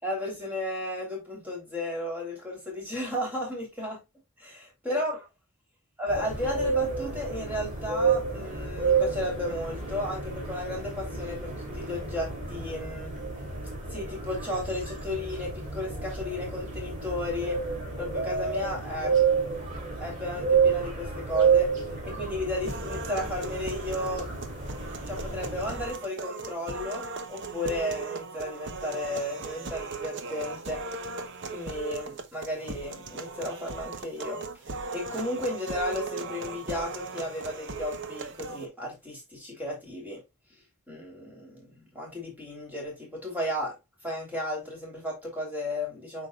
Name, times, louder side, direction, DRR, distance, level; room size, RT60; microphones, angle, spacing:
voice 1, 0.0-4.0 4.4-5.2 6.0-13.1 13.9-17.6 18.0-19.1 20.0-21.7 22.0-24.3 25.1-30.8 31.5-34.6 34.9-40.2 40.9-43.7 44.0-46.3, left 1 dB, 10° right, 3.3 m, -34 dB
sound 1, 6.1-25.9, right 5 dB, 35° right, 2.9 m, -30 dB
sound 2, 22.7-38.7, right 4 dB, 55° right, 0.9 m, -38 dB
8.2 x 4.9 x 2.4 m
head